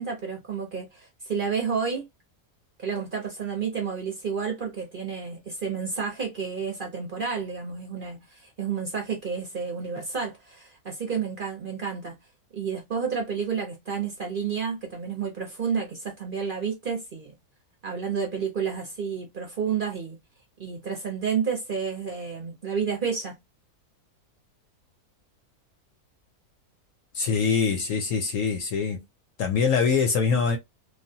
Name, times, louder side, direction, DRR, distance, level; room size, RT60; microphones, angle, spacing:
voice 1, 0.0-2.1 2.8-12.2 12.5-17.3 17.8-20.2 20.6-23.4, right 6 dB, 45° right, 0.7 m, -30 dB
voice 2, 27.1-29.0 29.4-30.6, left 5 dB, 70° left, 0.8 m, -24 dB
3.2 x 2.2 x 2.7 m
omnidirectional pair, 1.6 m